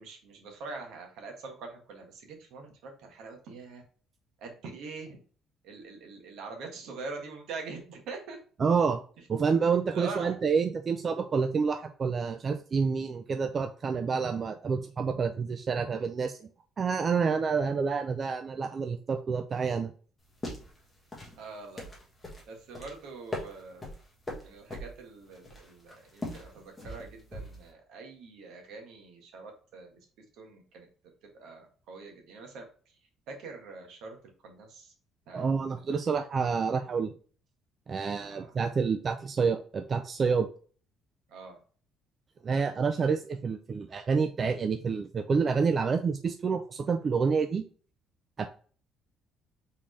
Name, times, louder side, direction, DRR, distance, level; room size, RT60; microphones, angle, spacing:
voice 1, 0.0-3.8 4.4-5.2 5.6-8.4 9.9-10.4 21.4-21.9 22.5-24.0 24.4-29.9 30.4-30.8 31.3-32.6 33.3-34.2 34.4-34.9 35.3-35.9 38.2-38.6 41.3-41.6, right 4 dB, 70° right, 3 dB, 1.4 m, -44 dB
voice 2, 8.6-9.0 9.3-16.5 16.8-19.9 35.3-37.1 37.9-40.5 42.4-47.6 48.4-48.5, right 5 dB, 25° right, 6 dB, 0.3 m, -28 dB
sound 1, 20.2-27.7, left 1 dB, 10° left, 1.2 m, -42 dB
4.2 x 3.6 x 3.1 m, 0.42 s
cardioid pair, 180°, 0 cm